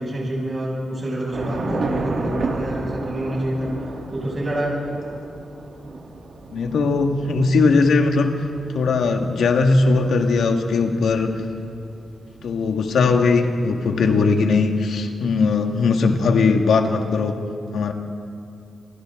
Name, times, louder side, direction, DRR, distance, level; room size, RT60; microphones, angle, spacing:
voice 1, 0.0-3.7 4.1-4.8, right 1 dB, 30° right, -4 dB, 7.2 m, -27 dB
Thunder / Rain, 1.3-13.8, right 2 dB, 65° right, 3.2 m, -33 dB
voice 2, 6.5-8.3 8.7-11.4 12.4-17.3 17.7-17.9, left 4 dB, 85° left, 4 dB, 1.9 m, -19 dB
29.0 x 28.5 x 3.9 m, 2.5 s
cardioid pair, 100°, 0 cm